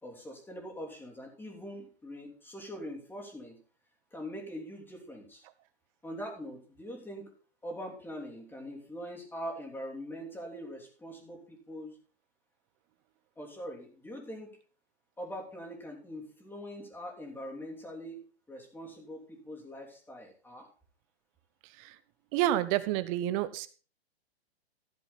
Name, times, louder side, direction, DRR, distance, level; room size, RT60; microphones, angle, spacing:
voice 1, 0.0-3.6 4.1-5.4 6.0-7.3 7.6-12.0 13.4-14.5 15.2-20.7, equal, 5° left, 0 dB, 3.1 m, -43 dB
voice 2, 22.3-23.7, right 13 dB, 30° right, 15 dB, 1.0 m, -29 dB
15.0 x 7.4 x 4.1 m, 0.38 s
hypercardioid pair, 120°, 32 cm